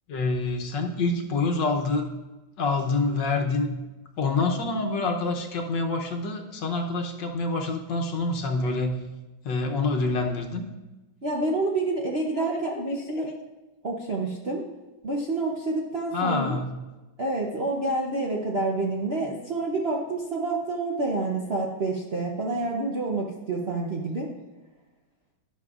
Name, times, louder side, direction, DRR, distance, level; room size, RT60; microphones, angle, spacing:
voice 1, 0.1-2.1 2.6-3.7 4.2-9.0 9.4-10.6 12.3-12.6 13.2-13.4 16.1-16.8, left 3 dB, 70° left, 3 dB, 1.5 m, -27 dB
voice 2, 11.2-13.3 13.8-14.6 15.0-16.6 17.2-24.3, right 2 dB, 50° right, -2 dB, 0.8 m, -28 dB
12.0 x 10.5 x 2.4 m, 1.1 s
omnidirectional pair, 2.1 m